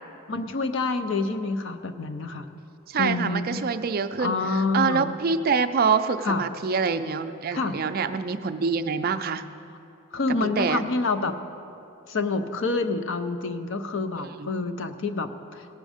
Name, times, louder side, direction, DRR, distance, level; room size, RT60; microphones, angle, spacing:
voice 1, 0.3-2.6 3.0-3.6 4.2-5.2 6.2-6.4 7.5-7.8 10.1-11.4 12.1-15.7, left 3 dB, 60° left, 9 dB, 0.6 m, -27 dB
voice 2, 2.9-4.3 4.7-9.5 10.6-10.8 14.2-14.5, right 5 dB, 45° right, 9 dB, 0.4 m, -25 dB
17.0 x 6.3 x 5.0 m, 2.7 s
head